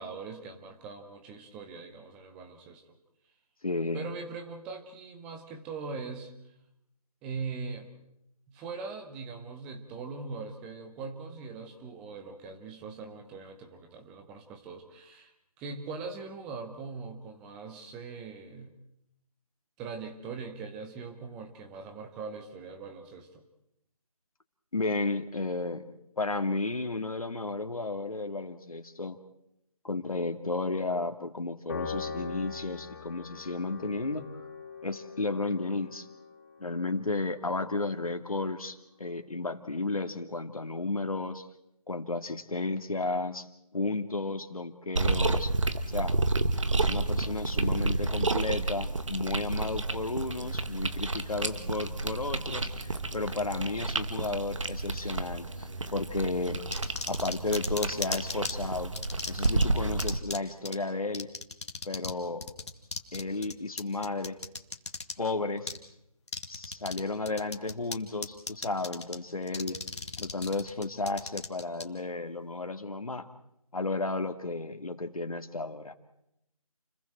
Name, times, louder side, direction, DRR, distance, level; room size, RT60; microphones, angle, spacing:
voice 1, 0.0-2.8 3.9-6.3 7.2-7.9 8.5-15.3 15.6-18.7 19.8-23.4, right 4 dB, 5° right, 4 dB, 0.8 m, -41 dB
voice 2, 3.6-4.1 24.7-25.9 26.2-29.2 29.8-34.3 34.8-36.1 36.6-41.5 41.9-45.5 45.9-46.2 46.7-56.6 57.1-58.9 59.3-61.3 61.9-62.5 63.1-64.4 65.2-65.7 66.5-69.8 70.2-73.3 73.7-75.9, left 3 dB, 65° left, 5 dB, 2.1 m, -33 dB
Piano, 31.7-38.3, left 5 dB, 30° left, 5.3 m, -42 dB
sound 1, 45.0-60.2, right 2 dB, 55° right, 1.9 m, -30 dB
sound 2, 56.7-58.5 59.0-59.6 60.0-60.4 60.7-60.8 61.1-62.2 62.4-65.1 65.7-65.8 66.3-67.0 67.3-68.0 68.2-69.2 69.5-71.8, left 3 dB, 50° left, 2.2 m, -36 dB
29.0 x 22.0 x 4.5 m, 0.82 s
figure-of-eight pair, 160°, 19 cm